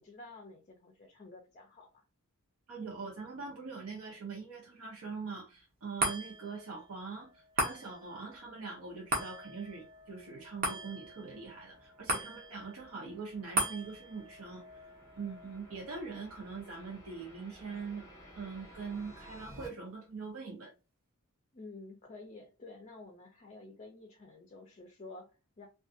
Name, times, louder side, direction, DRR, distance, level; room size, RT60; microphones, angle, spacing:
voice 1, 0.0-2.0 21.5-25.7, left 2 dB, 30° left, 0.4 m, -51 dB
voice 2, 2.7-14.6 15.2-18.0 18.3-20.7, right 4 dB, 75° right, 0.8 m, -43 dB
sound 1, 6.0-18.6 19.0-19.1, right 1 dB, 40° right, 0.7 m, -40 dB
sound 2, 8.4-19.7, equal, 15° left, 0.8 m, -57 dB
2.5 x 2.3 x 2.5 m
head